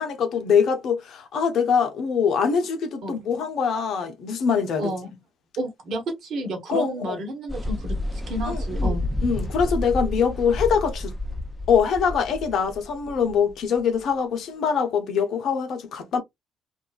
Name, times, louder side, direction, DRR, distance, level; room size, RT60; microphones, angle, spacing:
voice 1, 0.0-4.9 6.7-7.2 8.4-11.1 11.7-16.2, left 6 dB, 65° left, 0.7 m, -23 dB
voice 2, 4.8-5.2 5.6-8.0 8.3-9.1, right 1 dB, 60° right, 1.1 m, -31 dB
sound 1, 7.5-14.1, left 1 dB, 5° left, 0.6 m, -30 dB
2.5 x 2.3 x 2.4 m
hypercardioid pair, 50°, 0 cm